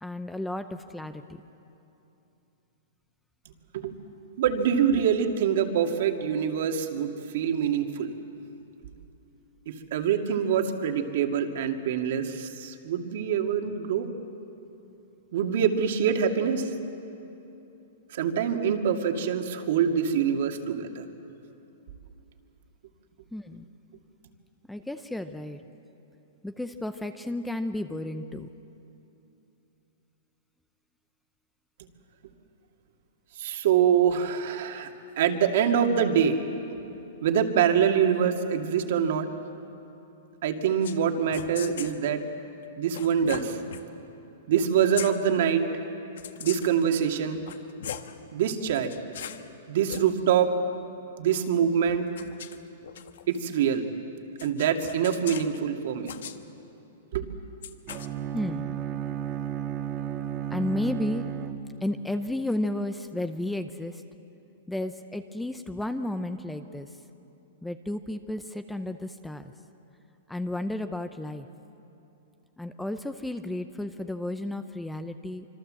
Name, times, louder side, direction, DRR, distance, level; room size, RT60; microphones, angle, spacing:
voice 1, 0.0-1.4 23.3-23.7 24.7-25.6 26.4-28.5 58.3-58.8 60.5-61.3 61.8-64.0 64.7-66.9 67.6-69.5 70.3-71.5 72.6-75.5, left 1 dB, 5° left, 9 dB, 0.6 m, -32 dB
voice 2, 4.4-8.1 9.7-14.1 15.3-16.7 18.1-21.0 33.4-34.9 35.2-36.4 36.7-36.8 37.2-39.3 40.4-42.2 42.8-43.6 44.5-45.6 46.4-47.4 48.3-48.9 49.7-50.5 51.2-52.0 53.3-53.9 54.4-56.1 57.1-57.3, right 8 dB, 60° right, 4 dB, 2.3 m, -25 dB
sound 1, 40.8-41.0 41.3-42.0 42.9-43.8 44.5-44.7 44.9-45.1 46.2-46.8 47.3-48.1 48.7-49.4 49.8-50.0 51.9-53.4 54.4-55.6 56.0-56.4 57.6-58.1, left 9 dB, 70° left, 1.4 m, -39 dB
Bowed string instrument, 57.9-62.1, right 9 dB, 25° right, 1.5 m, -33 dB
26.0 x 25.5 x 7.7 m, 2.9 s
hypercardioid pair, 160°, 0 cm